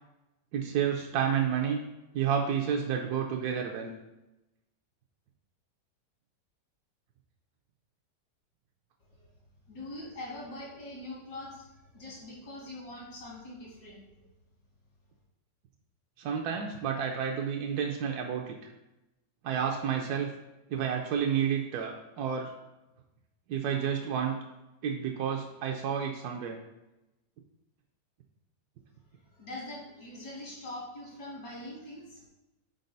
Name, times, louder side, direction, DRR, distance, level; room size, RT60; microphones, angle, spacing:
voice 1, 0.5-1.8 2.1-3.9 16.2-18.7 19.4-20.3 20.7-22.5 23.5-24.4 24.8-26.6, right 8 dB, 70° right, 1 dB, 1.0 m, -30 dB
voice 2, 9.7-11.6 11.9-14.0 29.3-32.2, left 1 dB, 75° left, -4 dB, 2.6 m, -43 dB
5.3 x 4.5 x 3.9 m, 0.97 s
omnidirectional pair, 1.9 m